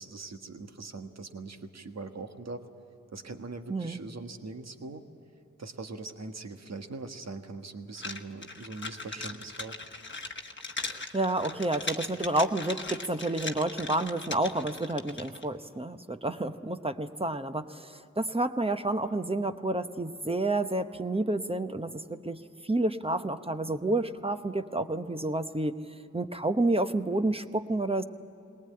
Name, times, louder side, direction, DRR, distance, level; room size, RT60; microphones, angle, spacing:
voice 1, 0.0-2.6 3.1-5.0 5.6-9.8, right 3 dB, 55° right, 6 dB, 1.5 m, -41 dB
sound 1, 8.0-15.5, left 3 dB, 40° left, 1.2 m, -39 dB
voice 2, 10.9-25.8 26.1-28.0, right 2 dB, 20° right, 9 dB, 0.9 m, -30 dB
20.5 x 19.0 x 8.7 m, 2.9 s
cardioid pair, 55°, 31 cm